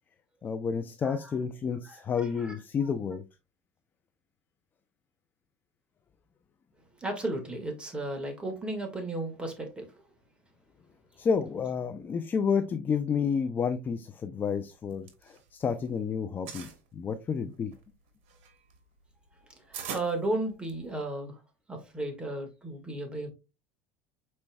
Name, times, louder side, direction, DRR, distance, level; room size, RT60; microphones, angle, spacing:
voice 1, 0.4-3.2 11.2-17.7, left 6 dB, 30° left, 0.5 m, -30 dB
voice 2, 1.8-2.6 7.0-10.0 19.3-21.4 21.7-23.3, right 2 dB, 15° right, 1.8 m, -35 dB
sound 1, 14.7-15.9 16.2-16.8 17.4-21.0, right 7 dB, 75° right, 1.3 m, -43 dB
5.4 x 4.3 x 2.3 m
supercardioid pair, 105°, 7 cm